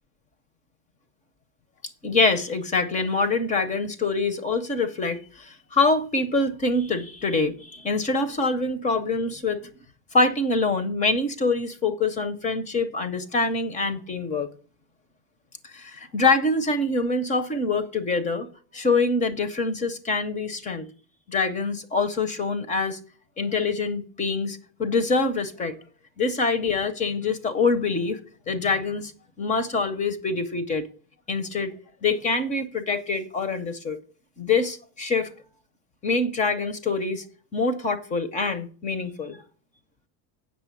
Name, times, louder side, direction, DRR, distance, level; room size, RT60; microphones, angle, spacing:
voice 1, 2.0-9.6 10.1-14.5 15.6-20.9 21.3-23.0 23.4-25.8 26.2-28.2 28.5-29.1 29.4-30.9 31.3-31.7 32.0-34.0 34.4-35.3 36.0-37.2 37.5-39.4, left 3 dB, 15° left, 0.5 m, -25 dB
8.3 x 6.4 x 7.7 m
cardioid pair, 175°, 46 cm